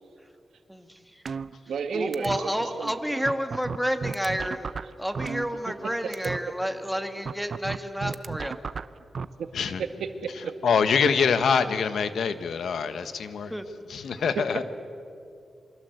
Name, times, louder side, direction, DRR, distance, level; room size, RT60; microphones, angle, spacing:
voice 1, 0.7-1.2 1.9-4.7 5.0-8.5 13.5-13.7, equal, ahead, 6 dB, 1.9 m, -30 dB
sound 1, 1.3-1.9 2.1-2.4 2.9-3.0 3.3-5.9 6.1-6.4 7.3-9.2, right 5 dB, 55° right, 0.7 m, -33 dB
voice 2, 1.7-3.3 5.7-5.8 6.0-6.2 9.4-9.5 9.8-10.8, right 5 dB, 90° right, 7 dB, 1.9 m, -33 dB
voice 3, 10.6-13.5 13.9-14.6, left 6 dB, 80° left, 11 dB, 1.4 m, -24 dB
28.0 x 24.0 x 8.0 m, 2.5 s
wide cardioid pair, 100°, 0 cm